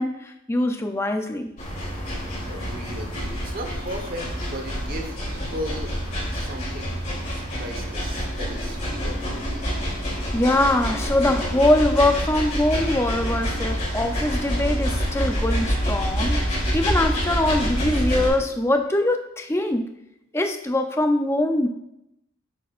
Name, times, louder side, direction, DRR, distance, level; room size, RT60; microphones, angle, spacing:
voice 1, 0.0-1.5 10.0-16.4 16.7-19.9 20.3-21.7, left 1 dB, 10° left, 5 dB, 0.5 m, -23 dB
sound 1, 1.6-18.3, equal, 35° left, 3.1 m, -27 dB
voice 2, 2.5-5.9 6.3-7.0 7.2-9.2, equal, 45° right, 4 dB, 1.1 m, -36 dB
8.5 x 8.0 x 2.5 m, 0.82 s
head